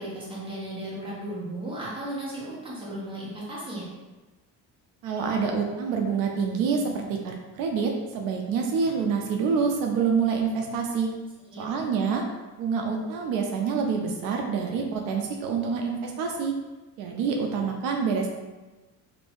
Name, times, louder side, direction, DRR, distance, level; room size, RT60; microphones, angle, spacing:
voice 1, 0.0-3.9 11.5-11.7, right 1 dB, 15° right, -7 dB, 0.9 m, -35 dB
voice 2, 5.0-11.1 11.6-12.2 12.6-16.5 17.0-18.3, right 5 dB, 75° right, 2 dB, 0.5 m, -27 dB
2.6 x 2.6 x 3.5 m, 1.2 s
cardioid pair, 170°, 35 cm